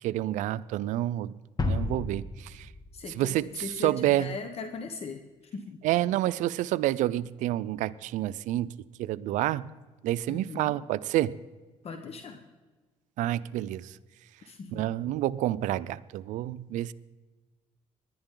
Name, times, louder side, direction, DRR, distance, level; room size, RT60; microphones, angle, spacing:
voice 1, 0.0-1.4 1.6-2.7 3.1-4.4 5.8-8.7 9.0-9.7 10.0-11.4 13.2-13.9 14.7-16.9, right 14 dB, 90° right, 17 dB, 0.5 m, -29 dB
sound 1, 1.6-3.6, left 2 dB, 30° left, 1.8 m, -32 dB
voice 2, 2.9-5.2 5.5-5.8 10.3-10.7 11.8-12.4 14.5-14.8, left 5 dB, 55° left, 7 dB, 1.2 m, -39 dB
20.5 x 11.5 x 3.8 m, 1.3 s
cardioid pair, 90°, 12 cm